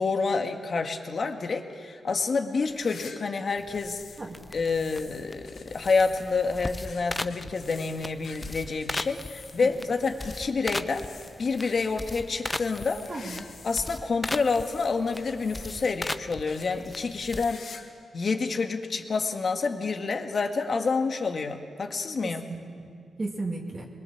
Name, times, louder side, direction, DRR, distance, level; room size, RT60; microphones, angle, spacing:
voice 1, 0.0-4.0 4.5-11.0 11.4-13.0 13.6-17.6 18.1-22.4, left 4 dB, 50° left, 5 dB, 1.8 m, -28 dB
sound 1, 2.6-4.3 4.6-13.9 14.2-16.1 16.5-16.7 17.1-18.0 18.2-18.3 19.1-19.2 20.4-20.5, left 5 dB, 70° left, 1.8 m, -48 dB
sound 2, 3.6-17.5, left 2 dB, 15° left, 0.7 m, -39 dB
voice 2, 13.1-13.5 22.2-22.9 23.2-23.9, right 2 dB, 40° right, -2 dB, 2.5 m, -35 dB
22.0 x 22.0 x 7.3 m, 2.3 s
cardioid pair, 75°, 0 cm